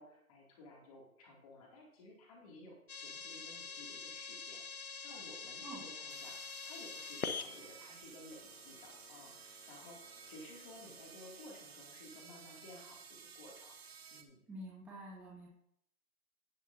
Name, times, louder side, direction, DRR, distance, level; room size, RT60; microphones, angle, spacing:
voice 1, 0.0-10.0 10.3-13.8 14.1-14.4, left 2 dB, 25° left, -1 dB, 2.5 m, -55 dB
sound 1, 2.9-11.1, left 5 dB, 75° left, 1.2 m, -46 dB
sound 2, 5.3-5.4 6.0-14.2, right 6 dB, 45° right, 1.0 m, -55 dB
voice 2, 14.5-15.5, right 1 dB, 5° right, -5 dB, 1.4 m, -48 dB
17.5 x 6.3 x 2.7 m, 0.72 s
figure-of-eight pair, 150°, 44 cm